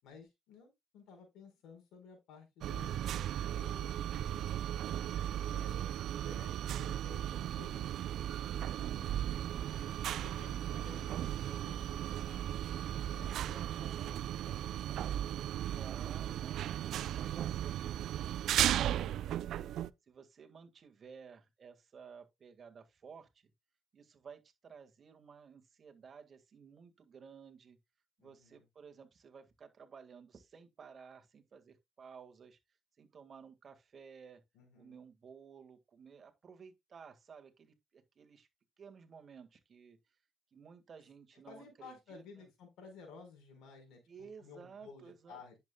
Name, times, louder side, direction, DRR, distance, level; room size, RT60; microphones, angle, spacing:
voice 1, 0.0-3.0 3.5-4.4 5.5-5.9 6.2-9.9 10.2-12.7 13.0-14.2 14.4-16.2 28.2-28.7 34.5-35.0 41.5-45.6, left 4 dB, 85° left, 4.6 m, -55 dB
sound 1, 2.6-19.9, right 11 dB, 75° right, 0.4 m, -36 dB
voice 2, 13.4-14.2 15.7-18.4 18.7-19.7 20.1-23.5 23.9-27.8 28.2-32.6 33.0-34.4 34.8-38.5 38.8-40.2 40.5-42.5 44.1-45.4, right 6 dB, 50° right, 1.8 m, -55 dB
10.5 x 7.3 x 2.3 m
cardioid pair, 90°, 0 cm